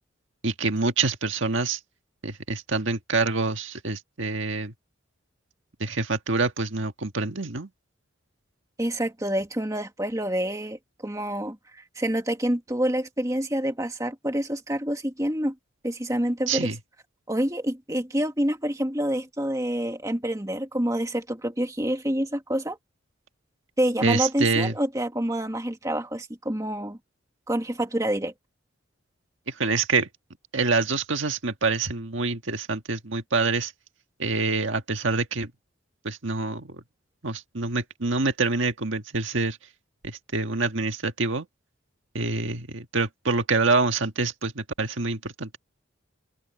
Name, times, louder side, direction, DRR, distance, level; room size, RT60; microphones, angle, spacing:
voice 1, 0.4-1.8 2.2-4.7 5.8-7.7 16.5-16.8 24.0-24.7 29.5-30.1 30.5-33.7 34.2-35.5 36.0-36.8 37.2-39.6 40.0-41.5 42.1-45.6, right 3 dB, 70° right, 1.7 m, -26 dB
voice 2, 8.8-15.6 15.8-16.7 17.3-22.8 23.8-27.0 27.5-28.3, right 1 dB, 15° right, 1.8 m, -27 dB
open air
head